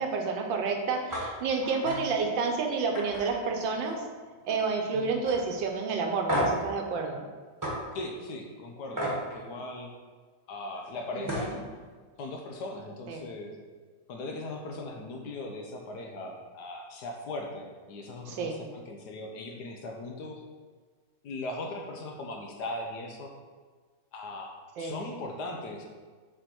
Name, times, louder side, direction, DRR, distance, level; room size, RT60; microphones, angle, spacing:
voice 1, 0.0-4.0 4.5-7.2 11.2-11.6 13.1-13.2 18.3-18.6 24.8-24.9, right 4 dB, 80° right, 3 dB, 1.5 m, -30 dB
sound 1, 1.1-1.3 1.6-2.0 2.4-2.5 2.9-4.1 4.4-4.8 5.2-5.4 6.3-6.6 7.6-7.7 9.0-9.2 10.8-10.9 11.2-11.5, equal, 10° right, 1.3 m, -31 dB
voice 2, 7.9-9.9 10.5-11.6 12.2-13.6 14.1-20.4 21.2-23.3 24.1-25.8, left 2 dB, 70° left, 2 dB, 1.2 m, -39 dB
6.9 x 3.8 x 4.3 m, 1.5 s
omnidirectional pair, 2.0 m